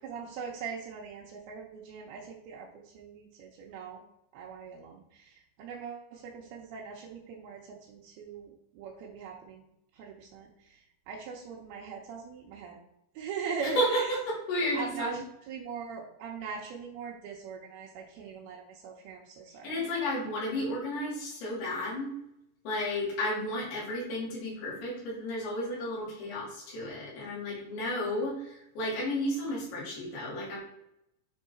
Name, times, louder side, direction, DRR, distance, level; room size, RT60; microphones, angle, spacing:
voice 1, 0.0-4.0 4.3-9.7 9.9-12.8 13.1-14.1 14.7-15.2 15.5-19.9, right 6 dB, 80° right, -3 dB, 2.8 m, -41 dB
voice 2, 13.6-15.2 19.6-22.1 22.6-30.6, left 1 dB, 75° left, -5 dB, 4.7 m, -32 dB
8.5 x 3.7 x 4.3 m, 0.80 s
omnidirectional pair, 4.6 m